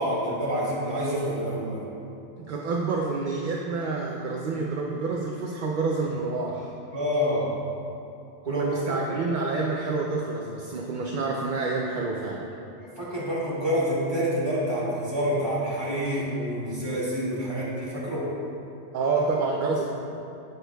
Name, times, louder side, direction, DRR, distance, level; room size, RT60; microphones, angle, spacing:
voice 1, 0.0-1.9 6.9-7.6 8.5-9.4 12.8-18.3, equal, 20° right, -9 dB, 2.0 m, -28 dB
voice 2, 2.5-6.7 8.4-12.4 18.9-19.9, right 3 dB, 55° right, -1 dB, 0.6 m, -28 dB
11.0 x 8.2 x 2.3 m, 2.7 s
omnidirectional pair, 1.2 m